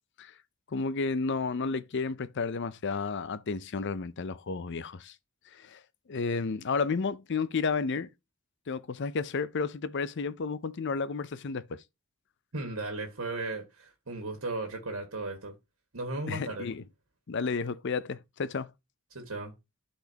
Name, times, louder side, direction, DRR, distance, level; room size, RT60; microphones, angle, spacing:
voice 1, 0.7-5.1 5.5-5.8 6.1-8.1 8.7-11.8 16.3-16.8 17.3-18.7, left 4 dB, 55° left, 0.5 m, -32 dB
voice 2, 12.5-15.5 15.9-16.7 19.1-19.5, right 2 dB, 80° right, 1.8 m, -36 dB
11.5 x 4.3 x 2.9 m
head